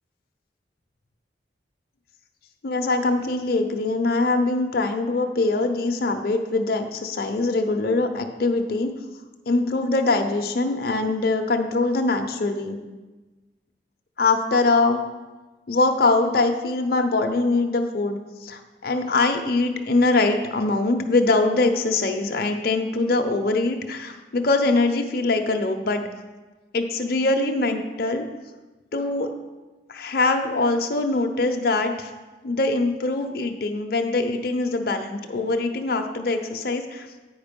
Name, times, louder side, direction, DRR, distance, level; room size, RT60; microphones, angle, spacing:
voice 1, 2.6-8.9 9.5-12.8 14.2-15.0 15.7-26.0 26.7-28.2 28.9-29.3 29.9-32.1 32.4-37.1, left 3 dB, 55° left, 4 dB, 0.6 m, -23 dB
8.7 x 5.0 x 5.2 m, 1.2 s
head